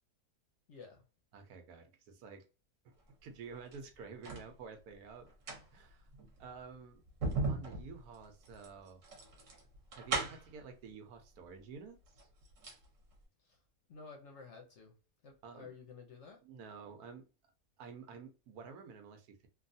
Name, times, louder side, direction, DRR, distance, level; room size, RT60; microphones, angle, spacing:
voice 1, 0.7-1.0 13.5-13.6 13.9-14.9 15.2-16.4, left 4 dB, 60° left, 0.8 m, -52 dB
voice 2, 1.3-2.4 2.8-2.9 3.2-5.3 5.7-6.1 6.4-7.0 7.5-9.0 9.9-12.3 15.4-15.7 16.4-17.3 17.8-19.5, right 5 dB, 75° right, 1.2 m, -50 dB
sound 1, 3.5-4.5 5.2-10.6 11.6-11.7 12.0-12.9 13.1-13.2, right 3 dB, 55° right, 1.2 m, -39 dB
3.1 x 2.3 x 2.6 m
omnidirectional pair, 1.6 m